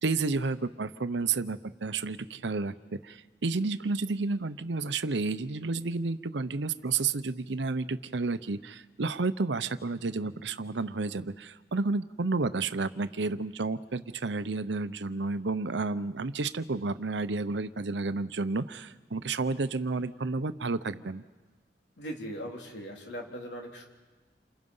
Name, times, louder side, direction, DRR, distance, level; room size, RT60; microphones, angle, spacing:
voice 1, 0.0-21.2, right 3 dB, 85° right, 13 dB, 0.8 m, -31 dB
voice 2, 22.0-23.9, equal, 75° left, 1 dB, 3.7 m, -39 dB
29.0 x 27.0 x 5.6 m, 1.3 s
head